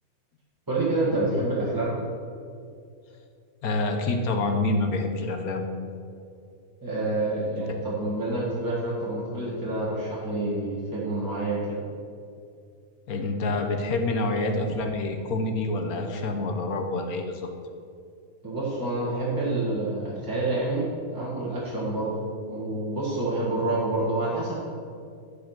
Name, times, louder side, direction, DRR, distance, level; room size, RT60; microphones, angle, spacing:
voice 1, 0.7-1.9 6.8-11.8 18.4-24.5, right 2 dB, 15° right, -7 dB, 1.6 m, -28 dB
voice 2, 3.6-5.6 7.6-7.8 13.1-17.5, left 2 dB, 90° left, 4 dB, 1.4 m, -27 dB
10.5 x 4.9 x 5.9 m, 2.4 s
omnidirectional pair, 1.5 m